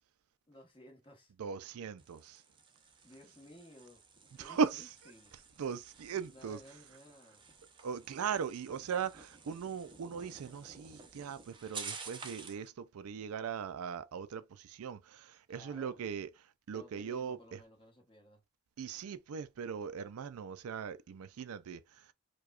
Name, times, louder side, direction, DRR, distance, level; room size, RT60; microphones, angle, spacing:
voice 1, 0.5-1.3 3.0-4.0 4.4-5.3 6.3-7.5 15.5-16.0 16.7-18.4, left 1 dB, 25° left, 1.1 m, -56 dB
voice 2, 1.4-2.4 4.4-4.9 5.6-6.6 7.8-14.4 14.7-16.3 16.7-17.6 18.8-21.8, right 6 dB, 75° right, 0.4 m, -38 dB
sound 1, 2.0-12.7, right 5 dB, 20° right, 0.6 m, -51 dB
4.7 x 2.3 x 2.4 m
head